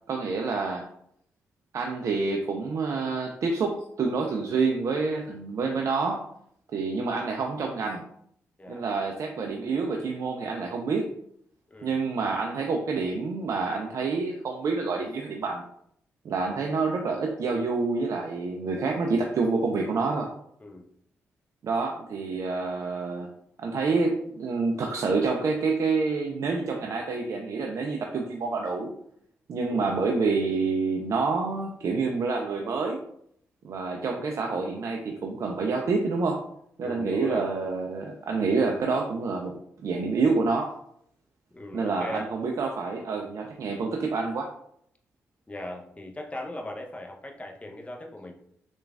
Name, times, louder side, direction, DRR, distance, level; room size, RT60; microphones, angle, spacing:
voice 1, 0.1-0.9 1.7-6.2 6.7-8.1 8.7-11.2 11.8-15.6 16.2-20.3 21.6-23.3 23.6-28.9 29.5-33.0 33.6-36.4 36.8-39.6 39.8-40.7 41.7-44.5, right 4 dB, 55° right, 1 dB, 0.3 m, -27 dB
voice 2, 11.7-12.0 20.6-20.9 29.7-30.0 36.8-37.5 41.5-42.3 45.5-48.3, left 1 dB, 20° left, 2 dB, 0.6 m, -39 dB
3.1 x 2.3 x 2.3 m, 0.69 s
hypercardioid pair, 40°, 6 cm